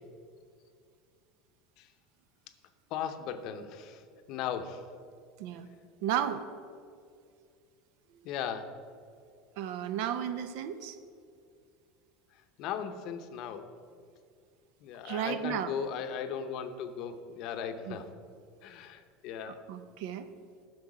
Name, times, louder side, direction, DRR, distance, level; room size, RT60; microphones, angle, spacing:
voice 1, 2.9-4.0 4.3-4.8 8.2-8.7 12.6-13.6 14.8-18.1 18.6-19.6, left 8 dB, 50° left, 9 dB, 0.7 m, -37 dB
voice 2, 6.0-6.4 9.6-11.0 15.0-15.7 17.9-18.0 19.5-20.3, right 10 dB, 65° right, 11 dB, 0.6 m, -33 dB
10.5 x 6.6 x 4.9 m, 2.3 s
supercardioid pair, 155°, 0 cm